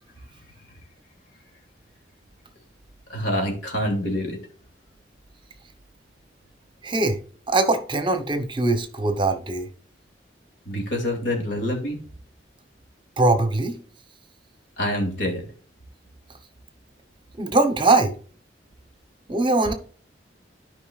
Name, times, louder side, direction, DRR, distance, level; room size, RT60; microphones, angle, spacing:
voice 1, 3.1-4.4 10.7-12.0 14.8-15.5, left 1 dB, 90° left, 2.7 m, -26 dB
voice 2, 6.8-7.2 7.5-9.7 13.2-13.8 17.4-18.1 19.3-19.7, right 2 dB, 25° right, 0.9 m, -21 dB
12.0 x 5.2 x 2.4 m
head